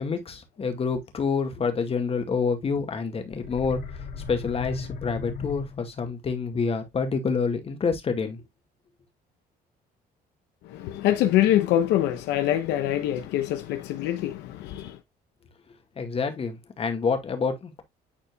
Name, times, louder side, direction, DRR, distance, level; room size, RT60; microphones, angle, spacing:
voice 1, 0.0-3.8 4.3-8.4 16.0-17.8, left 5 dB, 35° left, 2.0 m, -27 dB
sound 1, 3.3-6.1, left 5 dB, 70° left, 3.4 m, -37 dB
voice 2, 10.7-15.0, left 12 dB, 90° left, 0.9 m, -24 dB
10.0 x 4.4 x 2.3 m
cardioid pair, 110°, 17 cm